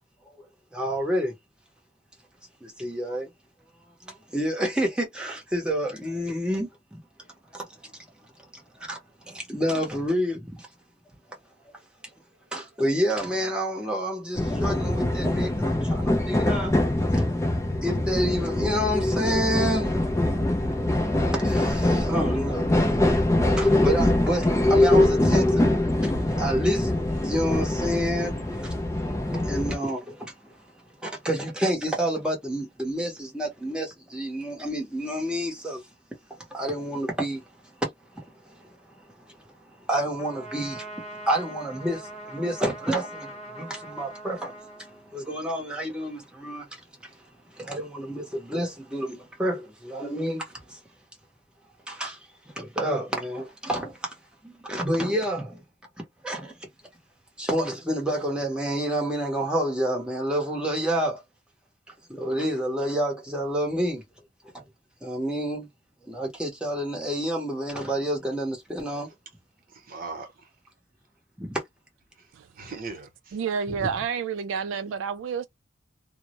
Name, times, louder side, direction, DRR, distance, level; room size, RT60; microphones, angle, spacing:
voice 1, 0.7-1.3 2.6-3.3 4.0-6.7 7.5-8.0 8.7-9.0 9.3-10.7 12.5-16.8 17.1-17.3 17.8-20.0 21.3-22.7 23.4-25.7 26.0-28.7 29.2-30.6 31.0-35.8 36.3-37.4 37.8-37.9 38.1-39.3 39.9-46.8 47.5-50.8 51.9-52.2 52.5-54.2 54.4-55.6 56.2-56.6 57.4-61.2 62.1-64.0 64.5-64.6 65.0-65.7 66.0-69.1, equal, 5° right, 0.7 m, -29 dB
sound 1, 14.4-29.8, left 1 dB, 15° left, 0.4 m, -23 dB
Trumpet, 40.2-45.4, right 1 dB, 35° left, 0.7 m, -42 dB
voice 2, 69.7-70.5 72.6-73.4 73.7-74.1, right 3 dB, 50° right, 0.8 m, -38 dB
voice 3, 73.3-75.5, right 6 dB, 90° right, 0.3 m, -29 dB
2.2 x 2.0 x 2.8 m
head